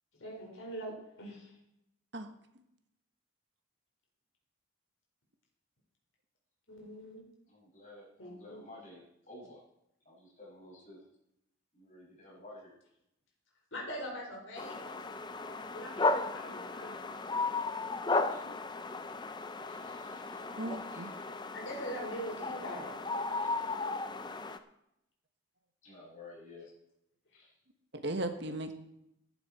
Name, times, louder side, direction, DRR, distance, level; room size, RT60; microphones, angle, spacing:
voice 1, 0.2-0.9 1.2-1.6 6.7-7.2 8.2-8.6 13.7-14.9 15.7-17.0 21.5-23.0 27.3-27.5, equal, 70° left, -2 dB, 4.7 m, -42 dB
voice 2, 7.5-9.6 10.0-11.0 11.7-12.7 18.3-18.5 19.7-20.4 20.7-21.1 23.4-23.5 25.8-26.7 27.4-27.5, left 2 dB, 35° left, -5 dB, 6.2 m, -53 dB
sound 1, 14.6-24.6, left 3 dB, 20° left, 0.6 m, -35 dB
voice 3, 20.6-21.1 27.9-28.7, right 1 dB, 55° right, 7 dB, 1.4 m, -36 dB
14.5 x 11.0 x 4.3 m, 0.81 s
head